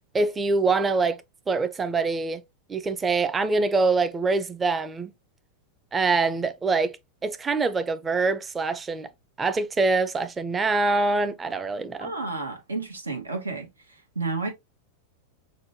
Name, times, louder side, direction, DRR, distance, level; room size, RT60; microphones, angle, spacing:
voice 1, 0.1-1.2 1.5-2.4 2.7-5.1 5.9-7.0 7.2-9.1 9.4-12.1, right 3 dB, 20° right, 0.5 m, -24 dB
voice 2, 12.0-13.7 14.1-14.5, right 3 dB, 90° right, 1.0 m, -31 dB
6.4 x 2.2 x 2.7 m
hypercardioid pair, 95°, 0 cm